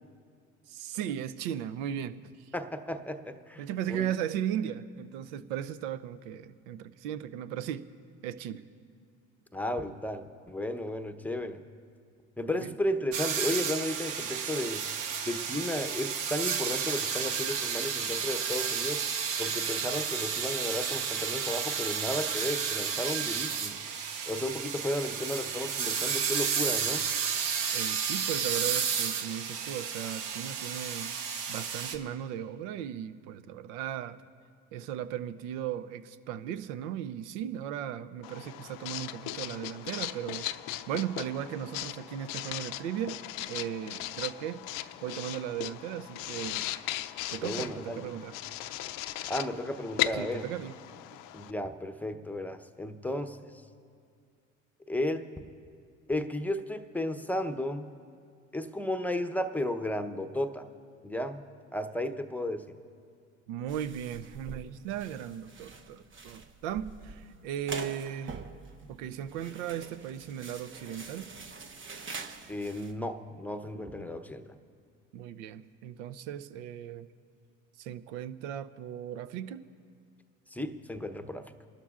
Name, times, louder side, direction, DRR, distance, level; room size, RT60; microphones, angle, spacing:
voice 1, 0.7-2.5 3.6-7.9 8.2-8.6 12.6-12.7 27.7-31.2 31.5-34.2 34.7-40.5 40.9-43.2 43.5-46.7 47.3-48.3 50.1-50.8 63.5-68.4 68.9-71.3 75.1-77.1 77.8-79.7, right 10 dB, 80° right, 14 dB, 0.6 m, -37 dB
voice 2, 2.5-4.1 9.5-11.6 12.4-14.8 15.2-19.0 19.4-23.7 24.3-27.1 47.4-48.0 49.3-50.5 51.3-53.4 54.9-55.3 56.1-57.9 58.5-60.7 61.0-61.4 61.7-62.8 72.5-74.5 80.5-81.5, left 1 dB, 5° left, 8 dB, 0.8 m, -34 dB
sound 1, 13.1-32.0, right 6 dB, 60° right, 1.0 m, -32 dB
Writing, 38.2-51.5, left 14 dB, 65° left, 0.5 m, -38 dB
sound 2, 63.7-72.9, right 4 dB, 35° right, 0.9 m, -45 dB
27.5 x 12.5 x 2.4 m, 2.3 s
hypercardioid pair, 70°, 35 cm